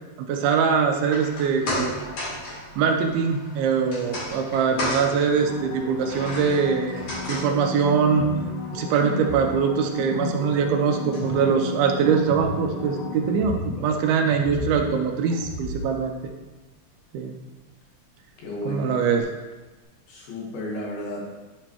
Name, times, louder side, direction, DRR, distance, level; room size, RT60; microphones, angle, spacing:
voice 1, 0.2-1.9 2.8-7.0 7.3-8.3 8.7-16.1 17.1-17.3 18.7-19.2, right 6 dB, 80° right, 3 dB, 2.3 m, -23 dB
sound 1, 0.9-13.3 13.7-13.8, left 1 dB, 50° left, 3.6 m, -36 dB
sound 2, 5.2-13.9 19.2-19.3, left 4 dB, 85° left, 1.7 m, -35 dB
sound 3, 8.2-13.9 14.2-15.8, left 1 dB, 45° right, 3.3 m, -34 dB
voice 2, 18.4-19.0 20.1-21.3, left 1 dB, 70° left, -3 dB, 3.1 m, -33 dB
11.0 x 5.1 x 3.0 m, 1.2 s
omnidirectional pair, 4.8 m